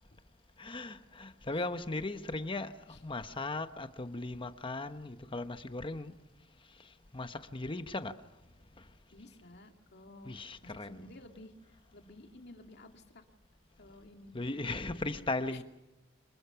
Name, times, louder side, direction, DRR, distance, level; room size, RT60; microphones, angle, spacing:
voice 1, 0.6-6.1 7.1-8.1 10.2-11.1 14.3-15.6, left 2 dB, 25° left, 1.1 m, -37 dB
voice 2, 9.1-10.4 10.6-11.6 11.9-13.2 13.8-14.3 14.7-15.1 15.5-15.6, left 2 dB, 60° left, 2.5 m, -53 dB
27.0 x 21.5 x 5.9 m
head